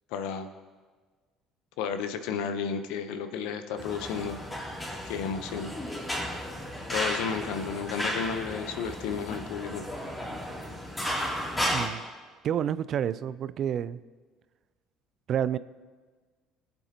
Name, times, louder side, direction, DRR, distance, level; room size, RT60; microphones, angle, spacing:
voice 1, 0.1-0.5 1.8-4.4 5.0-5.7 6.9-9.8, left 6 dB, 70° left, 9 dB, 0.9 m, -32 dB
sound 1, 3.8-11.9, equal, 20° left, 2.8 m, -34 dB
voice 2, 11.7-12.0 12.4-14.0 15.3-15.6, right 9 dB, 55° right, 17 dB, 0.4 m, -29 dB
21.0 x 8.0 x 3.0 m, 1.4 s
hypercardioid pair, 60°, 0 cm